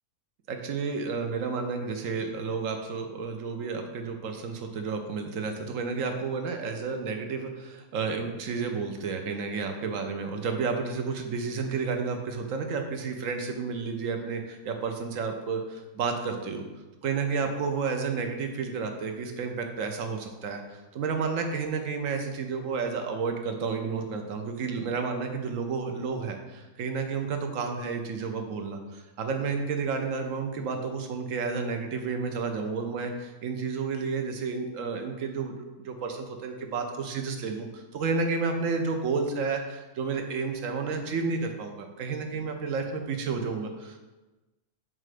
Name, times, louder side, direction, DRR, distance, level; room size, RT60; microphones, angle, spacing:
voice 1, 0.5-16.6 17.0-44.0, right 5 dB, 65° right, 5 dB, 1.0 m, -31 dB
7.4 x 2.5 x 4.9 m, 1.1 s
omnidirectional pair, 1.5 m